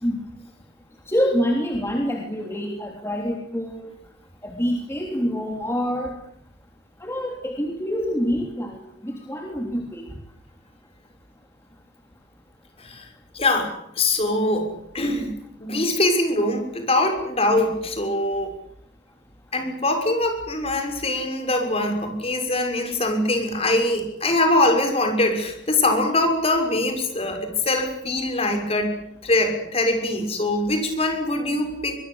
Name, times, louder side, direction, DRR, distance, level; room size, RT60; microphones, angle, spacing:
voice 1, 1.1-3.9 4.4-6.2 7.0-10.0, equal, 15° left, 1 dB, 3.3 m, -26 dB
voice 2, 13.3-15.3 15.6-18.5 19.5-28.9 29.2-31.9, left 2 dB, 35° left, 5 dB, 6.4 m, -23 dB
24.0 x 23.0 x 8.2 m, 0.73 s
head